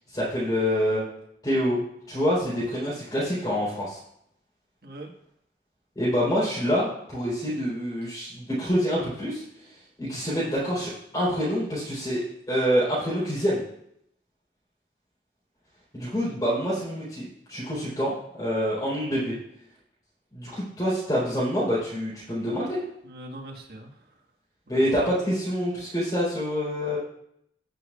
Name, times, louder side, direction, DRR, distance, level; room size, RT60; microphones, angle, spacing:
voice 1, 0.1-1.0 1.4-4.0 6.0-9.4 10.0-13.6 15.9-19.4 20.3-22.8 24.7-27.0, equal, 20° left, -9 dB, 4.0 m, -26 dB
voice 2, 23.0-24.2 24.7-24.9, right 1 dB, 60° right, 1 dB, 1.7 m, -42 dB
17.5 x 6.8 x 2.4 m, 0.72 s
head